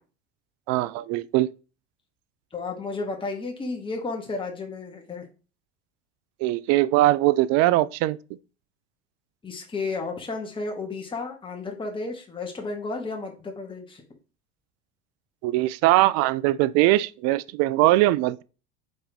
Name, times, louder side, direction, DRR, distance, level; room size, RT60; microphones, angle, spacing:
voice 1, 0.7-1.5 6.4-8.2 15.4-18.4, right 16 dB, 50° right, 0.4 m, -21 dB
voice 2, 2.5-5.2 9.4-14.0, left 3 dB, 15° left, 1.3 m, -32 dB
4.3 x 3.5 x 3.4 m
hypercardioid pair, 80°, 34 cm